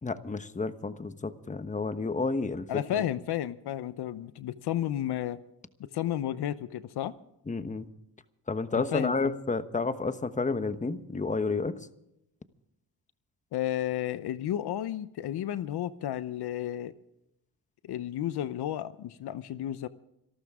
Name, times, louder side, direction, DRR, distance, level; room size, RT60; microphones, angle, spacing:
voice 1, 0.0-3.0 7.5-7.9 8.5-11.9, left 3 dB, 20° left, 11 dB, 1.1 m, -31 dB
voice 2, 2.7-5.4 5.8-7.1 8.7-9.3 13.5-16.9 17.8-19.9, left 11 dB, 75° left, 14 dB, 0.8 m, -32 dB
26.0 x 12.5 x 3.7 m, 0.82 s
cardioid pair, 85°, 40 cm